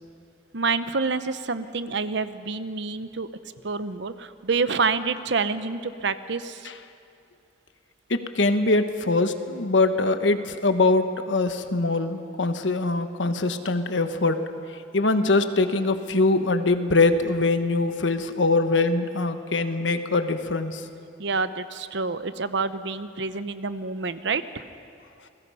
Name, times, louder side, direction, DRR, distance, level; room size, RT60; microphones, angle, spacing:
voice 1, 0.5-3.3 3.6-6.7 21.2-24.6, right 4 dB, 70° right, 12 dB, 0.9 m, -27 dB
voice 2, 8.1-14.4 14.9-20.8, left 3 dB, 75° left, 9 dB, 1.3 m, -23 dB
29.0 x 21.0 x 5.7 m, 2.5 s
head